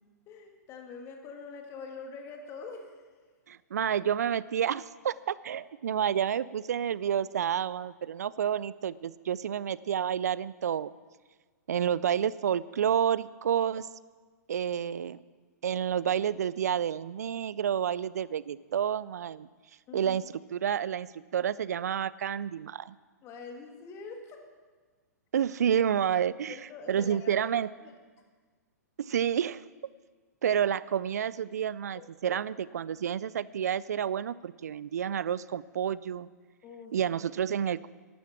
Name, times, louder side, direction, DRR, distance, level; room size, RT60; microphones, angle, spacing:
voice 1, 0.3-3.0 19.9-20.2 23.2-24.4 26.5-27.5 27.8-27.9 31.9-32.4 36.6-37.1, left 4 dB, 30° left, 3 dB, 2.0 m, -45 dB
voice 2, 3.5-10.9 11.7-13.9 14.5-15.2 15.6-19.5 19.9-20.2 20.5-23.0 25.3-26.6 26.9-27.7 29.0-29.6 30.4-36.3 36.9-37.9, right 9 dB, 65° right, 19 dB, 0.5 m, -29 dB
12.5 x 11.5 x 6.1 m, 1.5 s
figure-of-eight pair, 115°, 9 cm